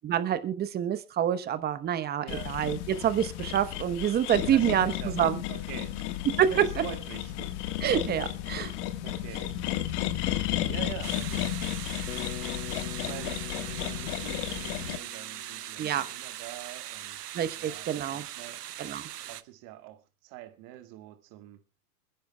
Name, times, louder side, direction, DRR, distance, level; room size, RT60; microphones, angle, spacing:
voice 1, 0.0-5.4 6.4-6.5 7.8-8.7 15.8-16.1 17.3-18.2 18.8-19.1, right 10 dB, 20° right, 1.0 m, -27 dB
voice 2, 2.2-2.5 4.4-5.2 5.5-6.0 6.3-7.8 9.0-9.5 10.6-11.5 12.9-18.6 19.3-21.6, right 14 dB, 40° right, 2.0 m, -45 dB
sound 1, 2.3-15.0, left 13 dB, 50° left, 1.6 m, -33 dB
sound 2, 11.0-19.4, right 12 dB, 80° right, 0.9 m, -40 dB
Bass guitar, 12.1-16.2, left 12 dB, 65° left, 1.4 m, -44 dB
27.5 x 10.0 x 2.3 m
hypercardioid pair, 120°, 46 cm